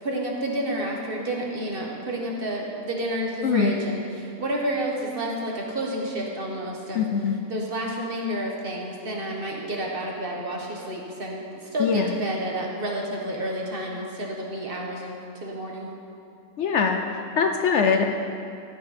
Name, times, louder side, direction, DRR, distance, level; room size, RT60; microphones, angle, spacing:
voice 1, 0.0-7.0 7.5-15.9, right 1 dB, 45° right, -1 dB, 1.4 m, -30 dB
voice 2, 3.4-3.7 6.9-7.4 11.8-12.1 16.6-17.0 17.4-18.1, left 6 dB, 65° left, 4 dB, 0.8 m, -22 dB
14.5 x 6.9 x 4.2 m, 2.5 s
omnidirectional pair, 1.5 m